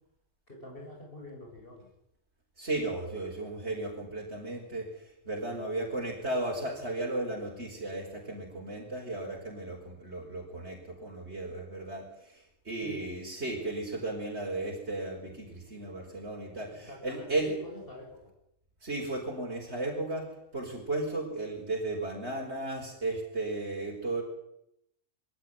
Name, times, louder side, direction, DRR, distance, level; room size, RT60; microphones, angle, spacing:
voice 1, 0.5-1.9 5.4-5.7 12.8-13.1 16.7-18.2, left 1 dB, 55° left, 0 dB, 7.0 m, -45 dB
voice 2, 2.6-17.5 18.8-24.2, right 2 dB, 80° right, -2 dB, 5.2 m, -35 dB
22.5 x 14.5 x 9.6 m, 0.81 s
omnidirectional pair, 1.1 m